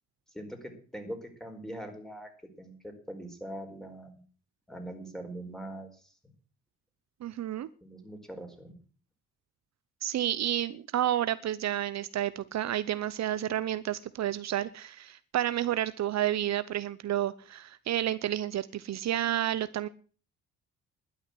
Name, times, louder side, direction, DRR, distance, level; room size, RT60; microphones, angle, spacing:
voice 1, 0.3-2.3 2.6-4.2 4.7-6.1 7.8-8.7, right 1 dB, ahead, 5 dB, 4.6 m, -42 dB
voice 2, 7.2-7.7 10.0-19.9, right 12 dB, 60° right, 15 dB, 0.8 m, -30 dB
12.0 x 9.7 x 7.7 m, 0.40 s
cardioid pair, 90°, 30 cm